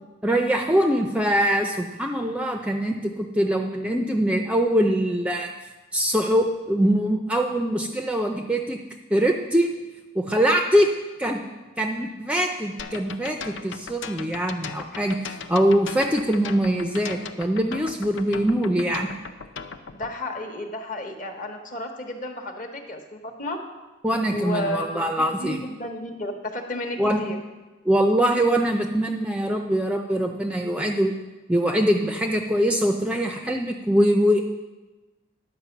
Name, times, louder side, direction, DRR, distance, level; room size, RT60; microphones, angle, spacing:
voice 1, 0.2-5.5 5.9-8.8 9.1-9.7 10.2-10.9 11.2-11.4 11.8-19.1 24.0-25.6 27.0-27.2 27.9-31.1 31.5-34.4, equal, 5° right, 3 dB, 0.4 m, -23 dB
sound 1, 12.8-20.1, left 6 dB, 60° left, 0.5 m, -37 dB
voice 2, 19.9-23.6 24.3-25.0 25.4-27.4, left 1 dB, 40° left, 3 dB, 1.0 m, -32 dB
10.5 x 5.1 x 7.1 m, 1.2 s
head